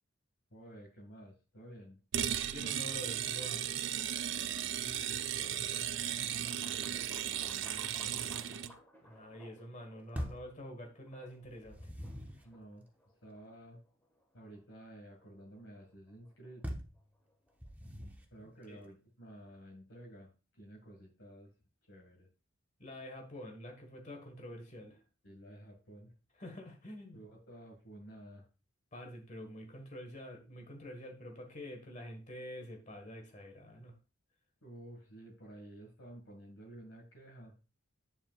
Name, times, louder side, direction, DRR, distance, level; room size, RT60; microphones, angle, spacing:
voice 1, 0.5-2.0 4.3-5.7 6.4-8.5 12.4-12.9 13.2-13.8 14.3-16.7 18.3-21.5 21.8-22.3 25.2-26.1 27.1-28.5 34.6-37.6, right 1 dB, 70° left, 2.0 m, -53 dB
sound 1, 2.1-8.7, right 10 dB, 60° right, 0.4 m, -36 dB
voice 2, 2.5-3.7 9.0-11.9 18.7-18.8 22.8-25.0 26.4-27.2 28.9-34.0, left 1 dB, 35° left, 1.5 m, -47 dB
sound 2, 4.5-18.2, equal, 10° left, 1.6 m, -61 dB
sound 3, 10.1-10.5 11.4-12.5 16.6-17.0 17.6-18.3, equal, 10° right, 0.8 m, -42 dB
8.6 x 7.7 x 2.4 m
head